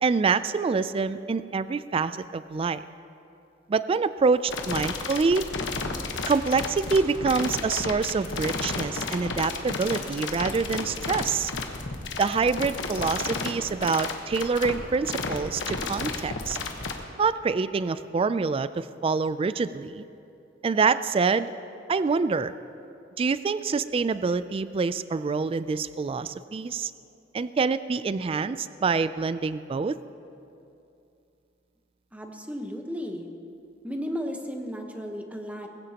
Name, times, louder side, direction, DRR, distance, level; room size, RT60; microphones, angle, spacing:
voice 1, 0.0-2.8 3.7-5.5 6.3-11.5 12.2-16.6 17.2-20.0 20.6-21.5 21.9-22.5 23.2-26.9 27.3-30.0, right 4 dB, 30° right, 14 dB, 0.3 m, -26 dB
sound 1, 4.5-16.9, left 4 dB, 85° left, 1.2 m, -32 dB
voice 2, 32.1-33.3 33.8-35.7, equal, 10° right, 3 dB, 1.1 m, -34 dB
20.5 x 16.0 x 2.9 m, 2.7 s
head